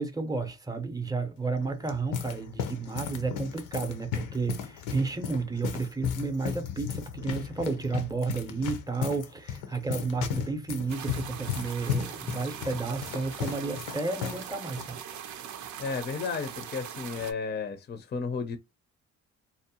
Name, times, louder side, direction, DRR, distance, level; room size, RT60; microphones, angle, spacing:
voice 1, 0.0-15.0, right 4 dB, 10° right, 0.6 m, -32 dB
sound 1, 1.6-14.5 14.7-14.9 15.6-15.9, left 9 dB, 85° left, 0.6 m, -35 dB
sound 2, 10.9-17.3, right 9 dB, 70° right, 0.5 m, -41 dB
voice 2, 15.8-18.6, left 5 dB, 35° left, 0.5 m, -33 dB
2.6 x 2.0 x 2.7 m
cardioid pair, 90°, 30 cm